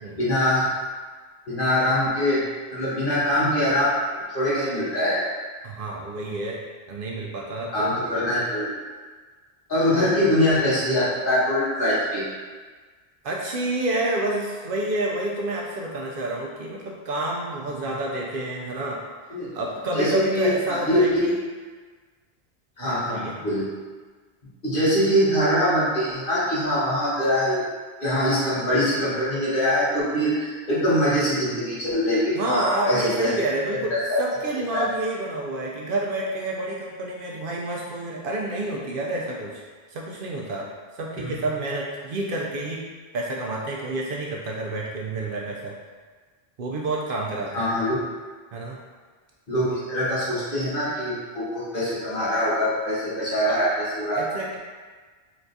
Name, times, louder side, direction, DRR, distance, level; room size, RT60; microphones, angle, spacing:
voice 1, 0.2-0.8 1.5-2.4 2.7-5.2 7.7-8.7 9.7-12.2 17.7-17.8 19.3-19.5 19.9-21.3 22.8-23.7 24.6-27.6 28.0-33.3 33.9-34.2 34.5-34.8 41.2-41.3 47.5-47.9 49.5-54.2, equal, 55° left, -9 dB, 1.4 m, -23 dB
voice 2, 5.6-6.6 6.9-8.1 9.9-10.2 13.2-19.0 19.5-21.3 22.8-23.3 32.3-33.9 34.2-39.6 39.9-40.7 40.9-42.8 43.1-45.8 46.6-47.7 48.5-48.8 54.1-54.6, right 2 dB, 65° right, -2 dB, 0.7 m, -29 dB
4.0 x 3.4 x 2.6 m, 1.5 s
omnidirectional pair, 1.1 m